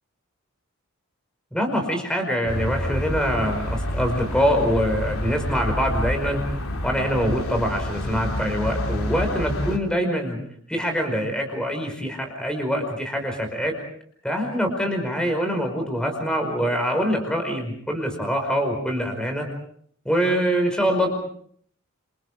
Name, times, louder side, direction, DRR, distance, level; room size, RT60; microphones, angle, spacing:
voice 1, 1.5-6.4 6.8-10.4 10.7-13.8 14.2-19.5 20.0-21.1, equal, 5° left, 3 dB, 5.0 m, -24 dB
sound 1, 2.5-9.8, left 1 dB, 90° left, 3.1 m, -28 dB
28.5 x 27.5 x 4.9 m, 0.64 s
head